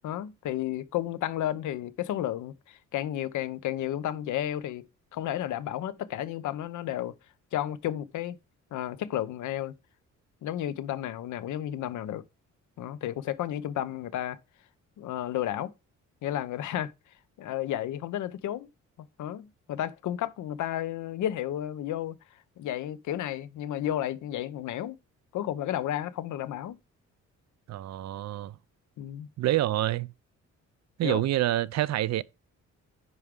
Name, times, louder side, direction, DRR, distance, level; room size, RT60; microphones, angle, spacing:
voice 1, 0.0-4.8 5.1-7.1 7.5-8.4 8.7-9.7 10.4-12.2 12.8-14.4 15.0-15.7 16.2-16.9 17.4-18.7 19.2-22.2 22.6-25.0 25.3-26.8 29.0-29.3 31.0-31.2, left 12 dB, 75° left, 0.8 m, -32 dB
voice 2, 27.7-28.5 29.4-30.1 31.0-32.2, right 14 dB, 60° right, 0.5 m, -27 dB
9.8 x 4.7 x 3.7 m
cardioid pair, 90°, 30 cm